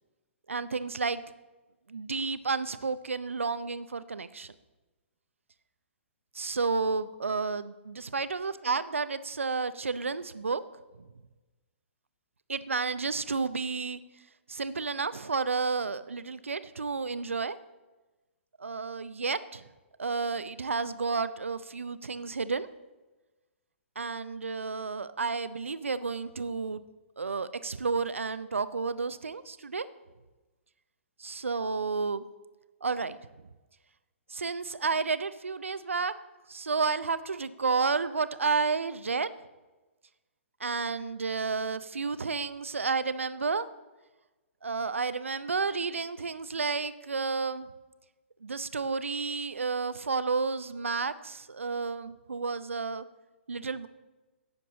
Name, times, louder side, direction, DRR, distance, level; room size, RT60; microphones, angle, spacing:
voice 1, 0.5-1.2 1.9-4.5 6.3-10.6 12.5-14.0 14.5-17.6 18.6-19.6 20.0-22.7 24.0-26.8 27.2-29.9 31.2-32.2 32.8-33.2 34.3-36.1 36.5-39.3 40.6-43.7 44.6-47.7 48.4-53.0 53.5-53.9, right 4 dB, 75° right, 14 dB, 0.6 m, -31 dB
16.5 x 6.9 x 4.0 m, 1.2 s
figure-of-eight pair, 120°, 7 cm